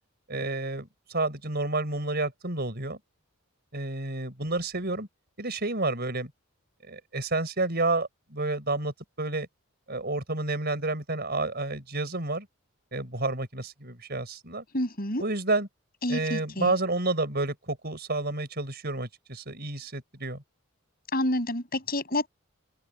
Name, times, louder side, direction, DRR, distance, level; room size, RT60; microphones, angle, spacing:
voice 1, 0.3-3.0 3.7-5.1 5.4-6.3 6.9-9.5 9.9-12.5 12.9-14.6 15.2-15.7 16.1-20.4, right 2 dB, 45° right, 5.6 m, -30 dB
voice 2, 14.7-15.2 16.0-16.7 21.1-22.3, left 1 dB, 45° left, 7.4 m, -28 dB
open air
head